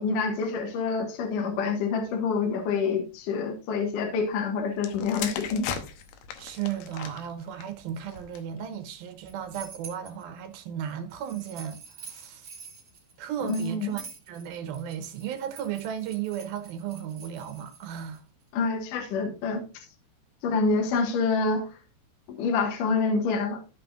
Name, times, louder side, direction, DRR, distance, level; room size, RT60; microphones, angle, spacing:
voice 1, 0.0-5.7 13.5-13.9 18.5-19.6 20.4-21.6 22.4-23.6, left 4 dB, 60° left, 2.7 m, -27 dB
sound 1, 4.8-8.6 9.4-9.7, left 8 dB, 75° left, 2.8 m, -38 dB
voice 2, 6.4-12.5 13.2-18.2, right 9 dB, 70° right, 2.7 m, -35 dB
sound 2, 7.9-8.4 9.0-10.2 11.1-18.2, right 5 dB, 30° right, 2.9 m, -47 dB
14.0 x 5.7 x 2.5 m
omnidirectional pair, 4.9 m